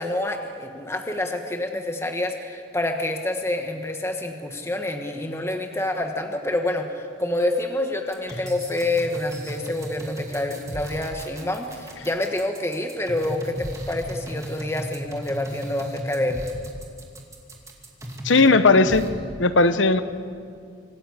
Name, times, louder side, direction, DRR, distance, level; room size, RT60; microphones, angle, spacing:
voice 1, 0.0-16.4, left 1 dB, 15° left, 4 dB, 1.3 m, -27 dB
sound 1, 8.1-18.5 18.9-19.1, equal, 15° right, 2.4 m, -35 dB
voice 2, 18.2-19.0 19.4-20.0, left 3 dB, 90° left, 12 dB, 1.0 m, -16 dB
25.5 x 14.5 x 8.3 m, 2.3 s
head